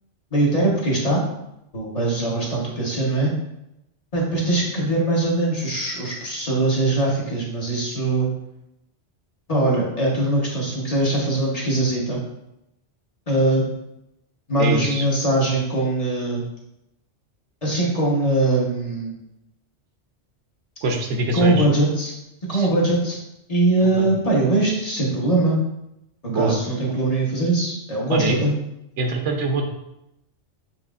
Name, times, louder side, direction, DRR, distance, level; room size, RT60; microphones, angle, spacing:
voice 1, 0.3-1.2 1.7-3.3 4.1-8.3 9.5-12.2 13.3-13.6 14.5-16.4 17.6-19.1 21.3-22.1 22.5-23.2 23.5-25.6 26.3-28.5, right 2 dB, 35° left, -4 dB, 1.0 m, -21 dB
voice 2, 14.6-15.0 20.8-21.7 22.5-22.7 24.0-24.1 26.3-26.6 28.1-28.3 29.0-29.6, right 3 dB, 80° right, 3 dB, 1.1 m, -24 dB
7.2 x 2.9 x 2.4 m, 0.86 s
omnidirectional pair, 1.2 m